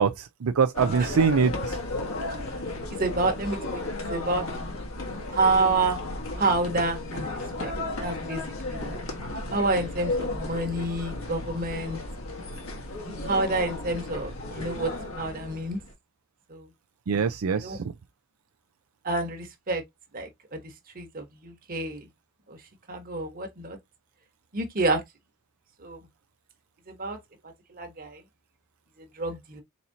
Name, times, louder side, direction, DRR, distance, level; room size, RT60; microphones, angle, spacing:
voice 1, 0.0-1.7 17.1-17.8, right 6 dB, 80° right, 0.4 m, -23 dB
sound 1, 0.7-15.9, left 2 dB, 75° left, 1.4 m, -34 dB
voice 2, 2.9-4.4 5.3-6.0 6.4-7.7 8.0-8.9 9.5-12.0 13.3-14.9 15.2-15.8 16.5-16.7 17.5-17.8 19.0-19.8 20.1-20.6 20.9-22.1 22.5-22.6 22.9-23.8 24.5-25.0 25.8-26.0 26.9-27.2 27.7-28.2 29.2-29.6, right 2 dB, 45° right, 1.3 m, -28 dB
4.3 x 4.1 x 2.7 m
head